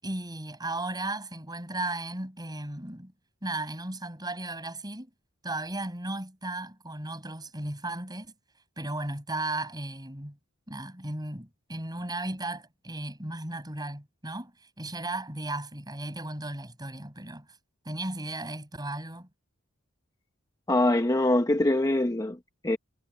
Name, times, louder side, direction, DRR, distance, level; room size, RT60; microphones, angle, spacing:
voice 1, 0.0-3.1 3.4-5.1 5.4-8.3 8.8-10.4 10.7-17.5 17.8-19.3, right 2 dB, 20° right, 5.8 m, -35 dB
voice 2, 20.7-22.8, left 1 dB, 15° left, 0.8 m, -24 dB
head